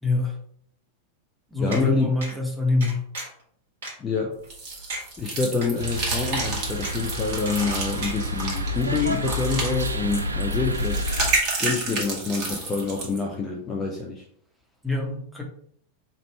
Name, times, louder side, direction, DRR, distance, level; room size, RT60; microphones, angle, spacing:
voice 1, 0.0-0.4 1.5-3.0 14.8-15.4, left 3 dB, ahead, -1 dB, 1.0 m, -25 dB
voice 2, 1.6-2.1 4.0-4.4 5.2-11.0 11.6-14.3, left 4 dB, 20° left, 1 dB, 0.6 m, -26 dB
sound 1, 1.7-1.8 2.2-2.4 2.8-3.4 3.8-3.9 4.4-4.5 4.9-5.0 5.6-5.7 6.4-6.5 6.8-7.1 7.5-7.8 8.0-8.6 9.0-9.4 9.7-9.8, right 2 dB, 65° right, 1.4 m, -35 dB
sound 2, 4.5-13.2, right 3 dB, 45° right, 1.4 m, -30 dB
sound 3, 5.8-11.3, equal, 80° right, 0.4 m, -29 dB
3.4 x 2.5 x 4.3 m, 0.63 s
figure-of-eight pair, 90°, 0 cm